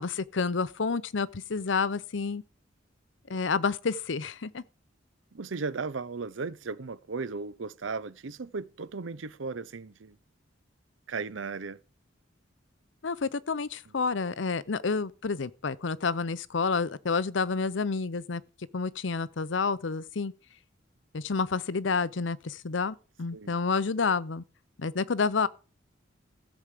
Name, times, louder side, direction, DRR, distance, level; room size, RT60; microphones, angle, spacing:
voice 1, 0.0-2.4 3.3-4.6 13.0-18.4 18.7-20.3 21.1-24.4 24.8-25.5, left 4 dB, 70° left, 0.7 m, -29 dB
voice 2, 5.3-10.2 11.1-11.8 23.3-23.6, right 4 dB, 80° right, 0.7 m, -36 dB
14.5 x 5.0 x 7.5 m
head